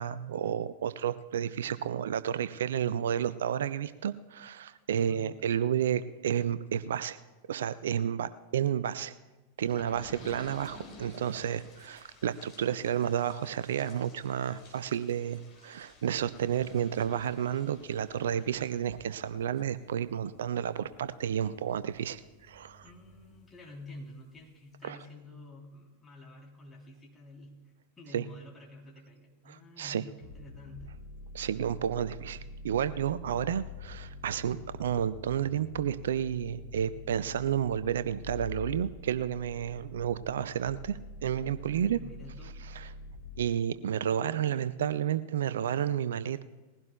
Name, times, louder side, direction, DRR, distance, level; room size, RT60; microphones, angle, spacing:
voice 1, 0.0-7.2 7.5-9.1 9.6-22.8 24.8-25.0 28.1-28.2 29.5-30.0 31.3-42.0 42.7-42.9 43.4-46.4, right 9 dB, 60° right, 15 dB, 0.4 m, -31 dB
sound 1, 9.6-23.9 24.4-24.5 24.7-24.8, left 2 dB, 30° left, 4.1 m, -54 dB
voice 2, 22.8-27.5 28.0-31.0 41.7-42.6, left 1 dB, 15° left, -2 dB, 3.4 m, -49 dB
sound 2, 30.2-43.5, left 2 dB, 80° left, 3.2 m, -45 dB
20.5 x 16.0 x 2.3 m, 1.2 s
figure-of-eight pair, 90°, 0 cm